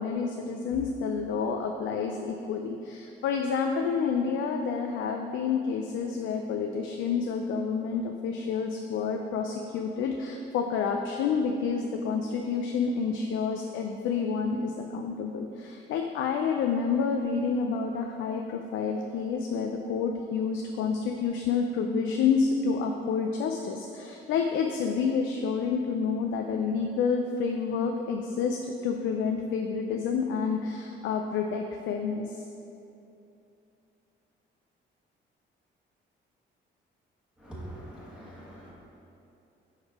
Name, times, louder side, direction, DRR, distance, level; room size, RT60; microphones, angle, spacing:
voice 1, 0.0-32.5, left 5 dB, 75° left, 3 dB, 0.4 m, -29 dB
voice 2, 37.4-38.7, right 1 dB, 5° right, -8 dB, 1.2 m, -43 dB
4.8 x 4.6 x 4.6 m, 2.8 s
cardioid pair, 90°, 20 cm